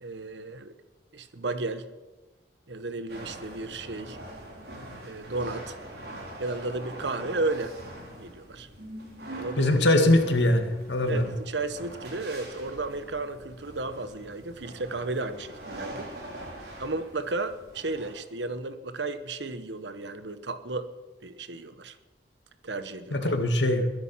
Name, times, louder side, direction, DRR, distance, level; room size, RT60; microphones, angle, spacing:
voice 1, 0.0-0.7 1.1-1.9 2.7-4.2 5.0-5.8 6.4-7.8 8.1-8.7 9.3-9.7 11.0-16.1 16.8-20.9 21.2-22.0 22.6-23.3, right 3 dB, 80° right, 11 dB, 1.1 m, -33 dB
sound 1, 3.1-18.1, right 1 dB, 60° right, 4.4 m, -43 dB
voice 2, 9.6-11.3 23.1-23.9, left 1 dB, 80° left, 6 dB, 2.1 m, -22 dB
21.5 x 10.5 x 5.8 m, 1.2 s
head